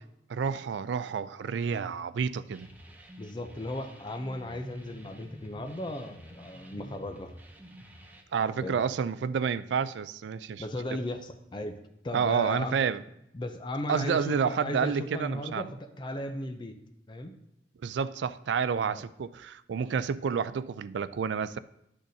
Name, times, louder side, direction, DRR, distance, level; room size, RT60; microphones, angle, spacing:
voice 1, 0.3-2.7 8.3-10.6 12.1-13.0 13.9-15.7 17.8-21.6, right 6 dB, 65° right, 0.3 m, -29 dB
sound 1, 2.5-8.2, right 1 dB, 10° right, 0.7 m, -49 dB
voice 2, 3.2-7.3 8.6-8.8 10.6-11.8 12.0-12.9 13.3-16.8 17.1-17.3 18.9-19.0, left 1 dB, 25° left, 0.5 m, -36 dB
11.5 x 6.3 x 2.7 m
head